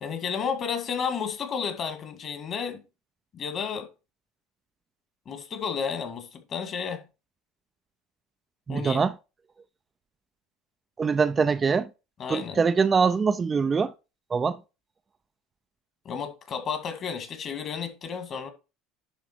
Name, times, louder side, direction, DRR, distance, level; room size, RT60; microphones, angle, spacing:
voice 1, 0.0-2.8 3.3-3.9 5.3-7.0 8.7-9.0 12.2-12.6 16.1-18.5, left 6 dB, 45° left, 2.0 m, -32 dB
voice 2, 8.7-9.1 11.0-11.9 12.3-13.9 14.3-14.6, right 5 dB, 30° right, 0.5 m, -23 dB
11.0 x 3.6 x 4.6 m
hypercardioid pair, 75°, 0 cm